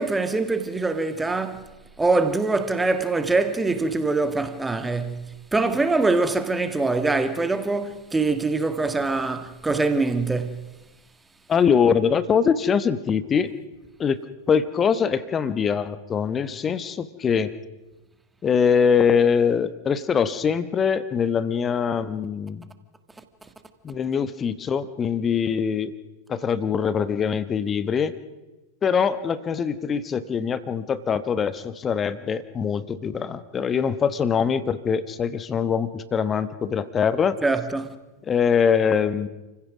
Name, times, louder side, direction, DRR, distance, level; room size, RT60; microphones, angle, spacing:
voice 1, 0.0-1.7 2.0-10.6 37.4-38.0, right 3 dB, 10° right, 1.7 m, -24 dB
voice 2, 11.5-13.5 14.0-14.2 14.5-17.5 18.4-22.7 23.8-25.9 26.3-28.2 28.8-37.4 38.3-39.3, left 6 dB, 20° left, 1.2 m, -23 dB
29.0 x 16.0 x 6.1 m
figure-of-eight pair, 90°, 0 cm